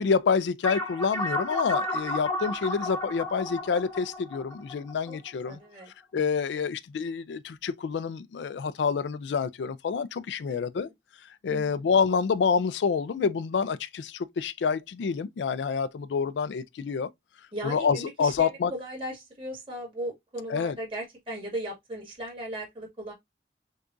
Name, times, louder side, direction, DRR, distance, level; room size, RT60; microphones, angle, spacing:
voice 1, 0.0-5.6 6.1-10.9 11.4-17.1 17.6-18.7 20.5-20.8, left 5 dB, 85° left, 0.4 m, -27 dB
sound 1, 0.6-5.5, left 1 dB, 15° left, 0.8 m, -32 dB
voice 2, 5.5-5.9 10.5-10.9 11.5-11.7 17.5-23.1, right 1 dB, 30° right, 2.0 m, -37 dB
6.5 x 2.4 x 2.5 m
head